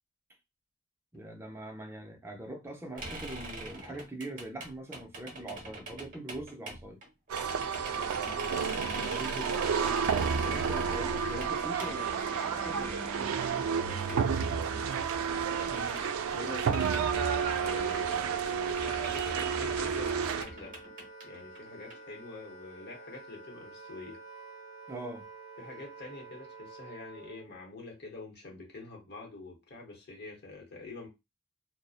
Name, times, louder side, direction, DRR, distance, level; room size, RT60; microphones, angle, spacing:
voice 1, 1.1-7.0 8.2-9.7 10.3-13.0 15.7-16.9 24.9-25.2, right 1 dB, 10° right, 0.5 m, -43 dB
sound 1, 3.0-18.4 18.7-22.0, right 2 dB, 40° right, 0.8 m, -42 dB
sound 2, 7.3-20.4, right 6 dB, 90° right, 0.3 m, -31 dB
voice 2, 13.6-14.8 16.3-16.7 17.6-20.8 21.2-24.2 25.6-31.1, left 3 dB, 55° left, 0.9 m, -46 dB
Wind instrument woodwind instrument, 14.9-27.5, right 3 dB, 85° left, 0.7 m, -50 dB
2.6 x 2.0 x 2.3 m
head